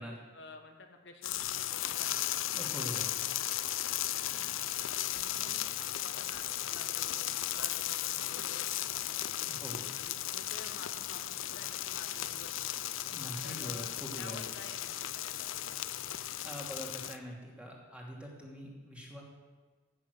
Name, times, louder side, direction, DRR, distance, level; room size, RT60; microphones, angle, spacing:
voice 1, 0.0-2.3 4.3-4.7 5.1-9.4 10.0-12.8 13.4-13.9 14.2-16.2, left 3 dB, 60° left, 4 dB, 1.2 m, -52 dB
sound 1, 1.2-17.2, left 13 dB, 85° left, 0.5 m, -36 dB
voice 2, 2.5-3.1 9.5-9.9 13.1-14.4 16.2-19.2, equal, 5° right, -3 dB, 2.8 m, -44 dB
14.5 x 9.2 x 6.6 m, 1.3 s
head